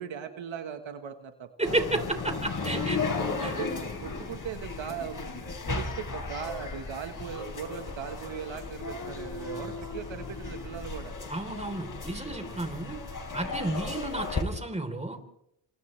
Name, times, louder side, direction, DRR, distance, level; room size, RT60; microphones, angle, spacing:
voice 1, 0.0-1.8 2.3-3.1 3.4-3.7 4.0-11.1, right 8 dB, 80° right, 7 dB, 1.6 m, -39 dB
sound 1, 1.6-14.4, left 4 dB, 45° left, 4.3 m, -35 dB
voice 2, 1.6-3.0 3.4-3.5 11.3-13.0 13.3-15.2, right 2 dB, 15° right, 5 dB, 3.7 m, -32 dB
29.5 x 27.0 x 3.4 m, 0.79 s
cardioid pair, 85°, 45 cm